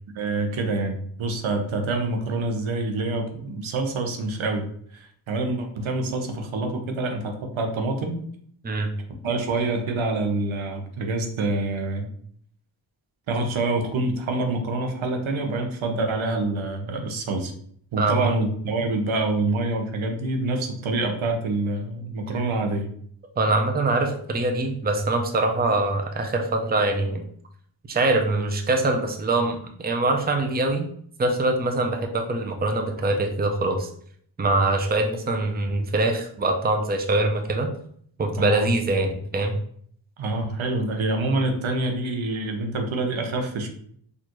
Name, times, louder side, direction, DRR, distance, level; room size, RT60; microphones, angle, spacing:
voice 1, 0.1-4.7 4.9-8.2 9.2-12.1 13.3-17.5 17.9-22.9 38.4-38.7 40.2-43.7, right 2 dB, 80° right, 4 dB, 0.8 m, -26 dB
voice 2, 18.0-18.3 23.4-27.2 27.9-30.9 31.2-33.9 34.4-37.7 38.2-39.6, right 2 dB, 20° right, 4 dB, 0.6 m, -23 dB
4.4 x 2.6 x 3.0 m, 0.62 s
cardioid pair, 70°, 47 cm